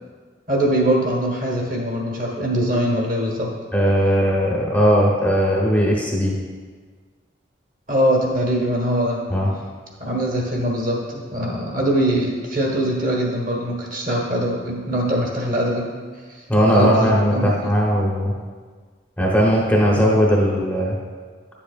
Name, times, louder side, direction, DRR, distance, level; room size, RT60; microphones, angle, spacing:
voice 1, 0.5-3.5 7.9-9.2 10.0-15.9 16.3-16.4 16.7-17.7 20.0-20.1, equal, 45° right, -1 dB, 1.3 m, -22 dB
voice 2, 3.7-6.3 9.3-9.5 16.5-18.3 19.2-21.0, equal, 10° left, -4 dB, 0.9 m, -18 dB
9.8 x 7.4 x 2.4 m, 1.5 s
head